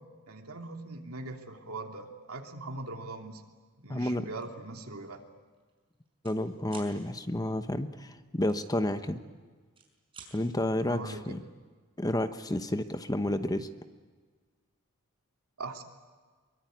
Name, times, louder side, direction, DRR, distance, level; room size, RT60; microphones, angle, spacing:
voice 1, 0.3-3.4 3.8-5.2 10.9-11.4 15.6-15.8, right 2 dB, 70° right, 3 dB, 3.1 m, -41 dB
voice 2, 3.9-4.3 6.2-9.2 10.3-11.4 12.0-13.7, left 1 dB, 15° left, 9 dB, 1.0 m, -30 dB
sound 1, 4.3-4.6 5.0-5.2 5.5-6.4 6.6-6.9 8.5-9.3 9.6-10.3, right 5 dB, 25° right, 5.7 m, -51 dB
25.0 x 23.5 x 9.3 m, 1.5 s
head